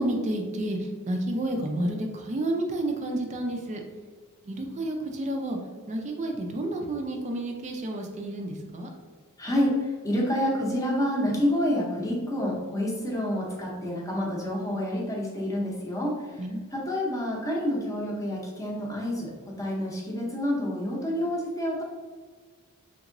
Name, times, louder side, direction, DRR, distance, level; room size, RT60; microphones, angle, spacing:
voice 1, 0.0-3.8 4.4-5.6 5.9-8.9 16.4-16.6, right 1 dB, 30° right, 3 dB, 0.4 m, -30 dB
voice 2, 9.4-16.1 16.7-21.8, left 1 dB, 15° left, -3 dB, 0.7 m, -28 dB
3.5 x 2.9 x 2.5 m, 1.5 s
head